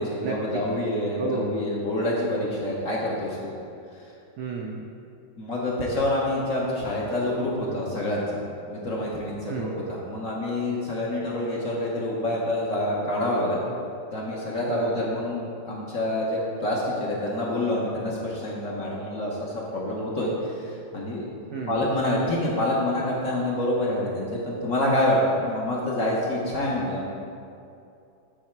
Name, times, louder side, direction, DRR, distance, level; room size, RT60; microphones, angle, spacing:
voice 1, 0.0-3.5 5.4-13.6 14.1-21.3 21.7-27.1, left 1 dB, 55° left, -4 dB, 1.1 m, -27 dB
voice 2, 1.2-1.5 4.4-4.8 9.5-9.8 14.7-15.1 21.5-21.8, right 4 dB, 70° right, -1 dB, 0.9 m, -31 dB
8.7 x 4.1 x 4.5 m, 2.6 s
omnidirectional pair, 2.2 m